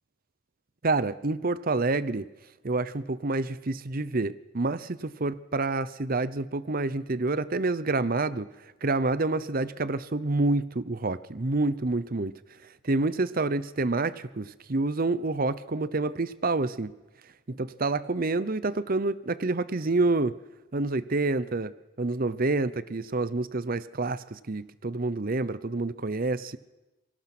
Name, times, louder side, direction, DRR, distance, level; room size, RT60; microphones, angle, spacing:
voice 1, 0.8-2.3 2.6-8.5 8.8-12.3 12.8-16.9 17.5-20.4 20.7-21.7 22.0-26.6, right 3 dB, 45° right, 16 dB, 0.8 m, -28 dB
27.0 x 24.0 x 6.0 m, 1.1 s
head